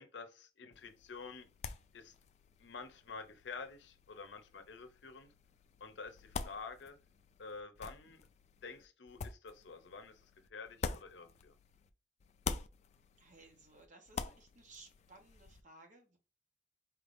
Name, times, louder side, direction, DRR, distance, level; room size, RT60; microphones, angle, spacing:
voice 1, 0.0-1.5 1.9-2.1 2.6-5.3 5.8-7.0 7.4-8.2 8.6-11.6, left 4 dB, 80° left, 0.6 m, -49 dB
sound 1, 0.7-11.9 12.2-15.6, left 5 dB, 40° left, 0.3 m, -47 dB
voice 2, 13.2-16.2, right 3 dB, 45° right, 0.9 m, -59 dB
4.4 x 3.4 x 2.5 m
head